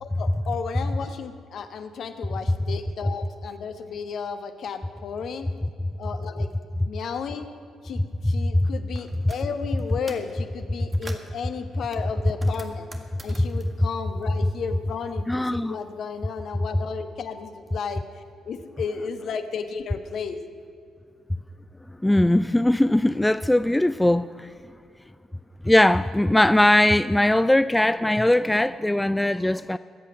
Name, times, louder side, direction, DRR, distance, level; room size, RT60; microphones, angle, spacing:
voice 1, 0.0-5.5 6.0-6.5 6.8-7.5 7.8-12.9 13.2-20.4, left 6 dB, 60° left, 1.1 m, -33 dB
sound 1, 8.9-9.4 9.8-10.3 10.7-11.4 11.9-14.8 15.1-16.2, right 2 dB, 30° right, 1.7 m, -46 dB
voice 2, 15.3-15.8 22.0-24.5 25.6-29.8, left 1 dB, 10° left, 0.4 m, -20 dB
22.0 x 8.4 x 6.1 m
figure-of-eight pair, 40°, 0 cm